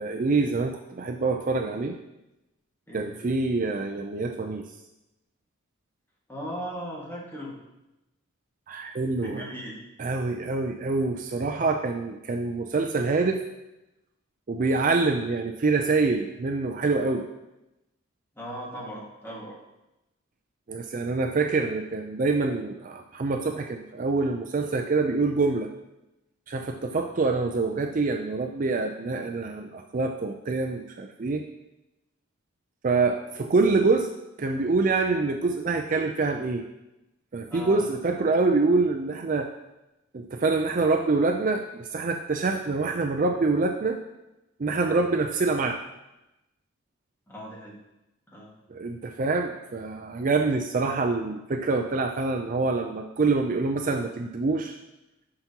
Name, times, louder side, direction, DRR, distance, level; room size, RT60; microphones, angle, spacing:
voice 1, 0.0-2.0 2.9-4.6 8.7-9.4 10.0-13.4 14.5-17.2 20.7-25.7 26.5-31.4 32.8-34.1 34.4-36.6 37.3-39.5 40.1-44.0 44.6-45.8 48.7-54.8, right 3 dB, 40° right, 4 dB, 0.4 m, -26 dB
voice 2, 6.3-7.6 9.2-9.8 18.3-19.6 37.5-37.9 47.3-47.8 48.3-48.5, equal, 10° left, -5 dB, 1.8 m, -38 dB
11.5 x 5.9 x 2.9 m, 0.95 s
head